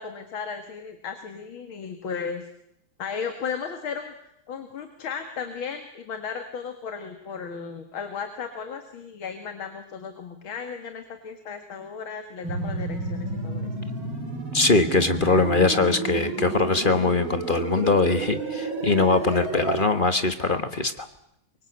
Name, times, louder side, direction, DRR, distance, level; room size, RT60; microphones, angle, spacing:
voice 1, 0.0-2.5 3.0-13.7, left 6 dB, 80° left, 7 dB, 2.6 m, -35 dB
sound 1, 12.4-19.8, right 3 dB, 75° right, 3.9 m, -31 dB
voice 2, 14.5-21.1, left 3 dB, 30° left, 10 dB, 1.2 m, -22 dB
24.0 x 23.5 x 8.1 m, 0.79 s
omnidirectional pair, 2.2 m